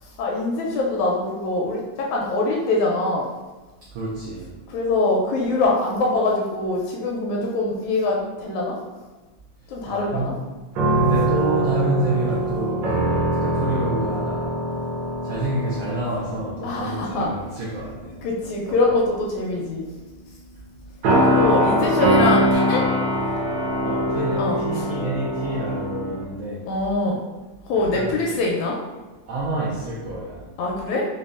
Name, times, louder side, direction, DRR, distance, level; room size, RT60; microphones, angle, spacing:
voice 1, 0.0-3.3 4.7-8.8 9.7-10.3 16.6-17.3 18.2-19.9 21.2-22.8 24.4-24.9 26.7-27.2 27.6-28.8 30.6-31.1, left 2 dB, 80° left, -2 dB, 1.7 m, -23 dB
voice 2, 3.9-4.6 9.9-10.3 10.9-14.6 15.2-18.2 23.8-26.7 27.7-28.2 29.3-30.5, right 2 dB, 90° right, -6 dB, 1.3 m, -28 dB
sound 1, 10.7-16.8 17.2-17.5 18.4-19.2 21.0-26.2, equal, 70° right, 1.8 m, -22 dB
5.2 x 2.2 x 2.4 m, 1.2 s
omnidirectional pair, 3.5 m